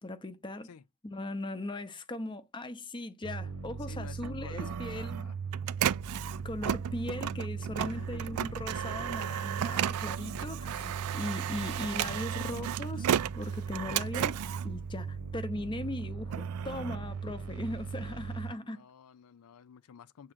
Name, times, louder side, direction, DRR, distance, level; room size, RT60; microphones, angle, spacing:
voice 1, 0.0-0.7 1.0-5.3 6.4-13.1 13.3-18.8, left 1 dB, 20° left, 0.7 m, -39 dB
sound 1, 3.2-18.5, right 5 dB, 75° right, 1.1 m, -39 dB
voice 2, 3.9-5.4 8.0-8.2 18.6-20.3, left 7 dB, 80° left, 0.4 m, -51 dB
Printer, 4.2-15.6 16.1-17.9, right 10 dB, 90° right, 0.4 m, -34 dB
7.6 x 3.7 x 6.1 m
head